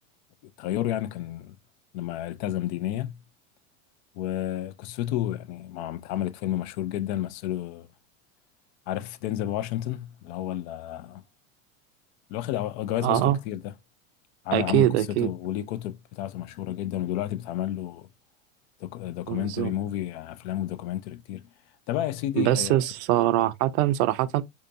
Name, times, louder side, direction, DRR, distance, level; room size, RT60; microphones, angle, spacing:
voice 1, 0.6-1.5 1.9-3.1 4.1-7.9 8.9-11.2 12.3-13.7 14.4-18.1 18.8-21.5 21.9-22.8, left 12 dB, 50° left, 0.5 m, -31 dB
voice 2, 13.0-13.4 14.5-15.3 19.3-19.7 22.4-24.4, right 14 dB, 55° right, 0.5 m, -23 dB
3.5 x 2.7 x 2.5 m
hypercardioid pair, 90°, 41 cm